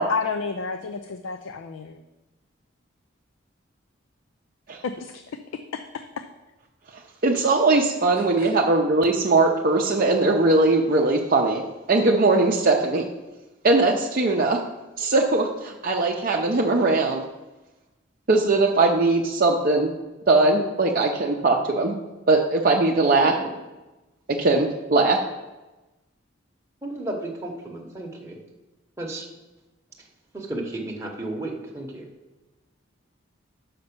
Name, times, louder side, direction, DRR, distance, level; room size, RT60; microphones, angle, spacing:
voice 1, 0.0-2.0 4.8-5.2 5.7-6.3 8.4-8.5, left 5 dB, 85° left, 8 dB, 0.4 m, -31 dB
voice 2, 7.2-11.6 11.9-13.1 13.6-14.6 15.0-17.2 18.3-19.9 20.3-22.0 22.3-23.3 24.4-25.2, right 3 dB, 45° right, 0 dB, 0.5 m, -20 dB
voice 3, 26.8-28.4 29.0-29.3 30.3-32.1, right 2 dB, 15° right, -1 dB, 0.9 m, -33 dB
5.8 x 5.3 x 6.8 m, 1.1 s
head